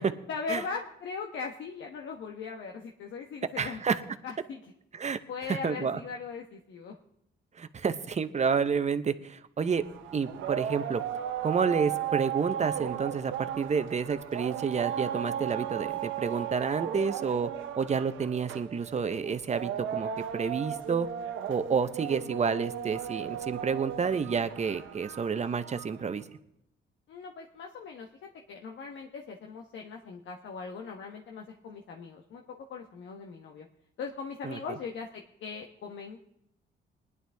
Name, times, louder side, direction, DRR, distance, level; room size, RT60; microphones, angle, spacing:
voice 1, 0.3-3.8 4.2-4.7 5.3-7.0 27.1-32.4 32.7-33.7 34.0-36.2, left 5 dB, 70° left, 2 dB, 1.2 m, -39 dB
voice 2, 3.6-3.9 5.0-5.2 5.5-6.0 7.6-9.8 10.1-11.0 11.4-17.5 17.8-21.1 21.5-26.2 34.5-34.6, right 6 dB, 35° right, 11 dB, 0.9 m, -29 dB
sound 1, 9.7-26.0, right 10 dB, 80° right, 0.9 m, -36 dB
20.0 x 11.0 x 3.5 m, 0.78 s
cardioid pair, 90°, 20 cm